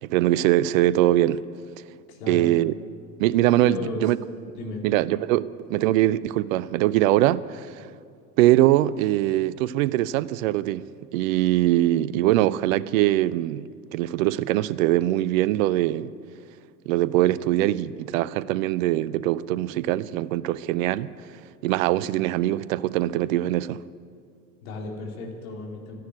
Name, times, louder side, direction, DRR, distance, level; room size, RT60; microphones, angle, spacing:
voice 1, 0.0-1.4 2.3-2.7 3.2-4.2 4.8-7.9 8.4-10.8 11.1-16.1 16.9-21.1 21.6-23.8, right 15 dB, 65° right, 0.6 m, -22 dB
voice 2, 2.1-2.5 3.6-4.0 4.5-4.8 24.6-25.9, left 3 dB, 70° left, 3.1 m, -34 dB
13.5 x 11.5 x 9.6 m
figure-of-eight pair, 65°, 44 cm